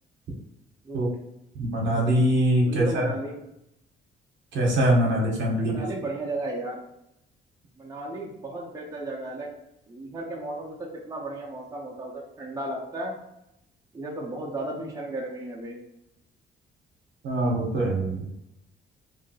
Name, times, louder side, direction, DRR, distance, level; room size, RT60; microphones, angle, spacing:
voice 1, 0.8-1.2 2.7-3.3 5.6-6.8 7.8-9.5 9.9-10.8 11.1-13.2 13.9-15.8, right 2 dB, 15° right, -3 dB, 0.7 m, -34 dB
voice 2, 1.6-3.1 4.5-5.8 17.2-18.3, right 1 dB, 65° right, -2 dB, 0.9 m, -23 dB
2.8 x 2.8 x 2.7 m, 0.83 s
cardioid pair, 90°, 20 cm